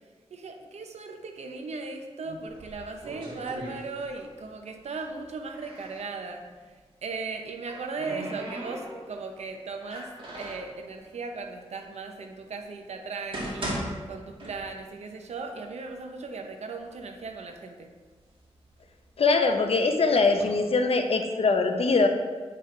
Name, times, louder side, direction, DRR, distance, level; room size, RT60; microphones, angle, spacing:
voice 1, 0.3-6.4 7.0-10.1 10.4-17.9, right 4 dB, 80° right, 4 dB, 0.8 m, -37 dB
sound 1, 2.5-4.4 4.7-6.1 7.2-9.2 9.8-10.7 11.5-11.6 12.3-12.4 13.0-15.0 15.3-15.4 16.1-16.2 16.6-17.2 17.8-19.5 20.1-20.4, right 1 dB, 50° right, 1.9 m, -38 dB
voice 2, 19.2-22.1, left 3 dB, 65° left, 5 dB, 0.7 m, -22 dB
8.6 x 5.3 x 3.3 m, 1.4 s
cardioid pair, 75°, 11 cm